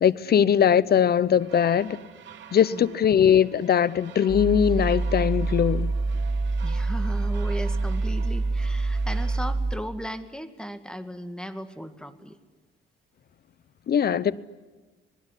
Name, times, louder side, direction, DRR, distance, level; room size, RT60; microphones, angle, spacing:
voice 1, 0.0-2.0 2.5-5.9 13.9-14.4, left 8 dB, 50° left, 0.9 m, -21 dB
sound 1, 1.4-9.4, right 10 dB, 70° right, 2.6 m, -47 dB
sound 2, 4.3-9.8, right 3 dB, 45° right, 2.2 m, -26 dB
voice 2, 6.6-12.4, equal, 5° left, 2.2 m, -36 dB
27.0 x 20.5 x 10.0 m
cardioid pair, 90°, 20 cm